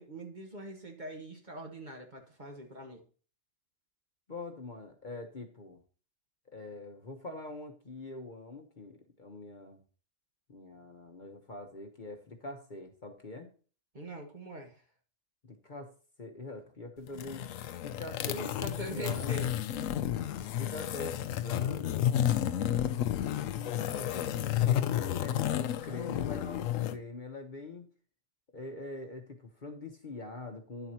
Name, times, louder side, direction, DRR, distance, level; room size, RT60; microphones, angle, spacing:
voice 1, 0.0-3.0 13.9-14.8 18.3-19.5, right 1 dB, 35° right, 3 dB, 1.4 m, -42 dB
voice 2, 4.3-5.8 6.5-9.8 10.5-13.5 15.4-15.9 16.2-17.5 17.8-19.5 20.6-22.1 23.4-27.9 28.5-30.9, left 2 dB, 40° left, 4 dB, 1.0 m, -44 dB
sound 1, 17.1-27.0, left 11 dB, 85° left, 1.0 m, -31 dB
10.0 x 7.7 x 2.9 m, 0.39 s
omnidirectional pair, 1.3 m